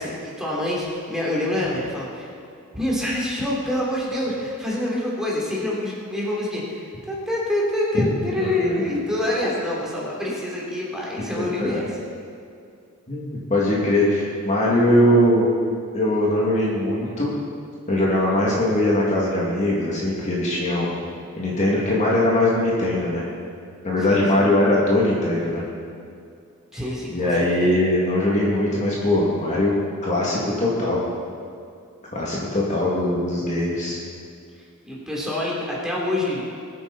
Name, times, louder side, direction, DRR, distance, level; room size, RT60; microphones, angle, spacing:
voice 1, 0.0-2.3 2.7-11.9 24.1-24.5 26.7-27.7 34.8-36.4, left 1 dB, 5° right, -5 dB, 3.3 m, -26 dB
voice 2, 8.4-8.7 11.4-11.7 13.1-15.5 15.9-17.3 17.9-20.9 21.4-23.2 23.8-25.6 27.1-29.7 30.0-31.0 32.1-34.0, left 1 dB, 35° left, -6 dB, 2.4 m, -21 dB
21.5 x 9.2 x 4.2 m, 2.3 s
head